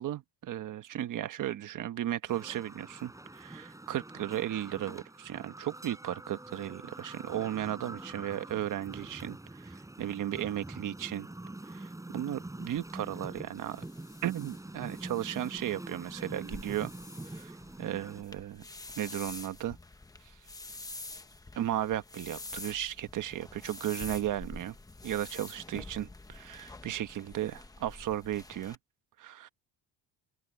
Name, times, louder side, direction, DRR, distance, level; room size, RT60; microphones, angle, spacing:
voice 1, 0.0-11.3 11.7-13.8 14.2-16.9 17.3-18.6 19.0-19.8 21.5-24.7 25.0-28.8 29.2-29.5, right 12 dB, 45° right, 1.3 m, -35 dB
sound 1, 2.3-18.2, right 2 dB, 5° right, 6.5 m, -45 dB
sound 2, 12.6-28.8, left 2 dB, 10° left, 0.9 m, -47 dB
open air
cardioid pair, 150°, 42 cm